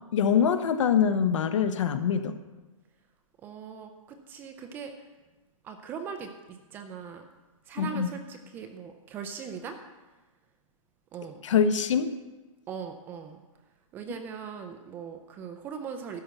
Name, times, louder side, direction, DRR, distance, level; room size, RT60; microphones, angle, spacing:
voice 1, 0.1-2.4 7.8-8.1 11.4-12.1, left 7 dB, 60° left, 10 dB, 1.0 m, -24 dB
voice 2, 3.4-4.9 5.6-7.2 7.7-9.8 11.1-11.4 12.7-13.4 13.9-16.2, right 6 dB, 10° right, 6 dB, 0.4 m, -40 dB
12.5 x 5.6 x 8.1 m, 1.2 s
hypercardioid pair, 160°, 18 cm